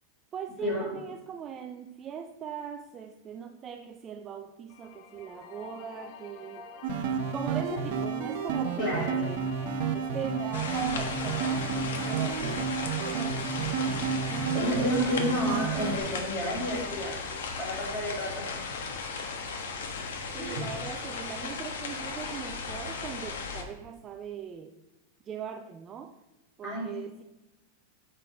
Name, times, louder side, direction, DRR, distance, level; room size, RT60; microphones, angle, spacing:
voice 1, 0.3-6.7 7.3-9.4 9.9-11.7 12.0-13.5 20.3-24.7 25.2-26.1 26.6-27.2, right 7 dB, 20° right, 6 dB, 0.3 m, -40 dB
sound 1, 4.7-15.8, left 5 dB, 35° left, 0.8 m, -46 dB
sound 2, 6.8-16.0, right 6 dB, 50° right, 0.7 m, -31 dB
voice 2, 8.8-9.2 11.7-11.8 14.5-17.2 17.6-18.5 20.4-20.8 26.6-26.9, left 1 dB, 15° left, -3 dB, 2.3 m, -31 dB
sound 3, 10.5-23.6, left 4 dB, 80° left, 1.3 m, -36 dB
7.5 x 5.5 x 5.0 m, 1.0 s
supercardioid pair, 175°, 0 cm